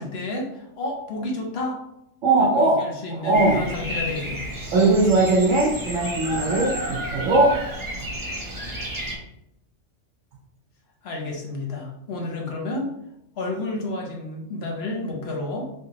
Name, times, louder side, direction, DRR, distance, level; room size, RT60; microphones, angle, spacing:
voice 1, 0.0-1.8 2.4-4.4 11.0-12.9 13.4-15.7, left 2 dB, 60° left, 0 dB, 0.9 m, -30 dB
voice 2, 2.2-2.8 3.1-3.6 4.7-7.5 8.0-8.1, right 2 dB, 75° right, -3 dB, 1.1 m, -19 dB
Bird vocalization bird call bird song, 3.3-9.2, right 1 dB, 20° right, 0.6 m, -31 dB
3.4 x 2.8 x 2.8 m, 0.81 s
omnidirectional pair, 1.3 m